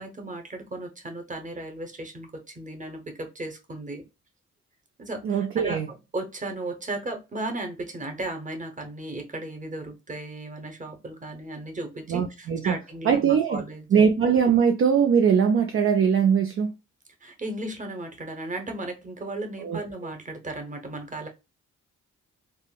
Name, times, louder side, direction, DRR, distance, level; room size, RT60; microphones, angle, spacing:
voice 1, 0.0-4.0 5.0-14.1 17.2-21.3, right 2 dB, 25° right, 0.9 m, -35 dB
voice 2, 5.2-5.9 12.1-12.7 13.0-13.6 13.9-16.7 19.6-19.8, right 7 dB, 45° right, 0.4 m, -21 dB
3.5 x 2.0 x 2.3 m
cardioid pair, 75°, 30 cm